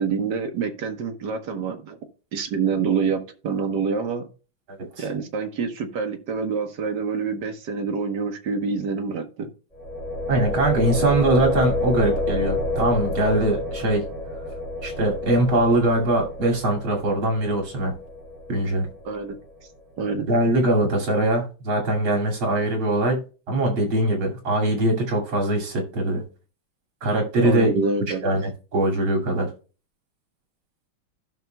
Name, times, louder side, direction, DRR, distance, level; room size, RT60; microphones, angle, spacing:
voice 1, 0.0-2.0 2.3-4.3 5.0-9.5 10.9-11.0 19.0-19.4 20.0-20.3 27.4-28.2, right 5 dB, 60° right, 6 dB, 1.6 m, -26 dB
sound 1, 9.7-19.6, left 1 dB, ahead, 4.6 m, -29 dB
voice 2, 10.3-14.0 14.8-17.9 18.5-18.9 20.3-26.2 27.0-27.7 28.2-29.5, right 1 dB, 80° right, 0 dB, 3.2 m, -22 dB
15.5 x 5.9 x 2.2 m, 0.35 s
omnidirectional pair, 2.2 m